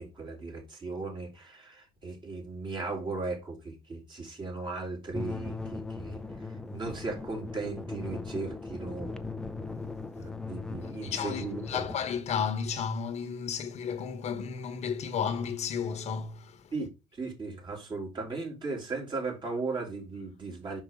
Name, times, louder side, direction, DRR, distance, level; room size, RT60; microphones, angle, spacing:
voice 1, 0.0-9.3 10.2-11.9 16.7-20.8, right 3 dB, 35° right, 3.5 m, -37 dB
sound 1, 5.1-12.0, left 3 dB, 5° left, 0.7 m, -39 dB
voice 2, 11.0-16.6, left 7 dB, 50° left, 1.2 m, -33 dB
5.9 x 5.2 x 3.7 m
supercardioid pair, 85°, 14 cm